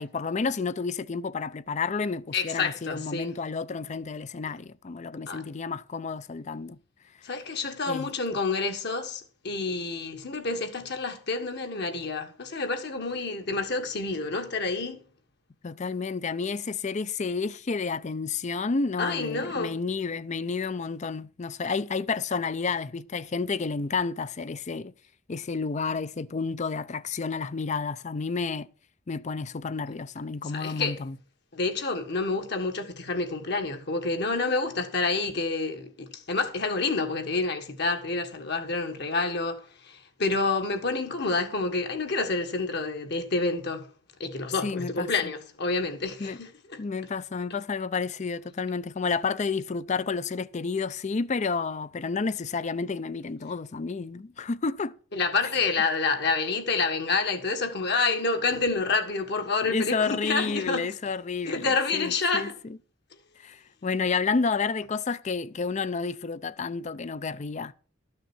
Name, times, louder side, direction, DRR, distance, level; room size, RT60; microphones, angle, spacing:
voice 1, 0.0-6.8 7.9-8.1 15.6-24.9 25.3-28.7 29.1-31.2 44.6-45.3 46.2-46.4 46.8-54.9 59.7-62.8 63.4-67.7, left 4 dB, 35° left, 0.5 m, -30 dB
voice 2, 2.3-3.4 5.3-5.4 7.2-15.0 19.0-19.8 30.5-31.0 31.5-43.9 44.2-46.8 55.1-60.9 61.4-62.6, left 3 dB, 60° left, 1.7 m, -28 dB
13.0 x 6.5 x 6.2 m
head